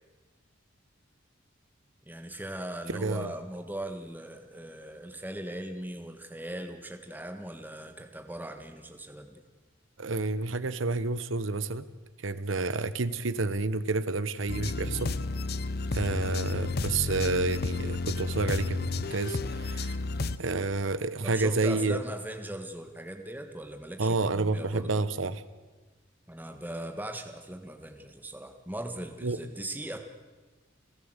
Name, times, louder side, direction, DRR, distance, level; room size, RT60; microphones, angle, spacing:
voice 1, 2.1-9.4 21.2-25.0 26.3-30.0, right 1 dB, 10° right, 6 dB, 1.7 m, -39 dB
voice 2, 2.9-3.3 10.0-11.8 12.2-15.1 15.9-20.0 20.4-22.0 24.0-25.4 29.2-29.4, right 3 dB, 75° right, 14 dB, 1.0 m, -29 dB
sound 1, 14.5-20.4, left 3 dB, 50° left, 0.8 m, -31 dB
29.5 x 13.5 x 8.1 m, 1.3 s
head